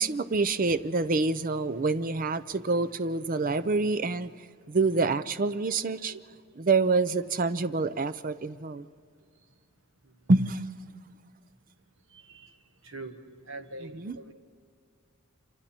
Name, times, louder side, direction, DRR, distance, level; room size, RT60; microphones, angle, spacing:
voice 1, 0.0-4.3 4.7-6.1 6.6-8.9 10.3-10.7 13.8-14.2, right 3 dB, 40° right, 0.5 m, -27 dB
voice 2, 12.1-12.5 12.8-13.2 13.5-14.3, right 2 dB, 60° right, 1.5 m, -43 dB
27.5 x 26.0 x 4.4 m
head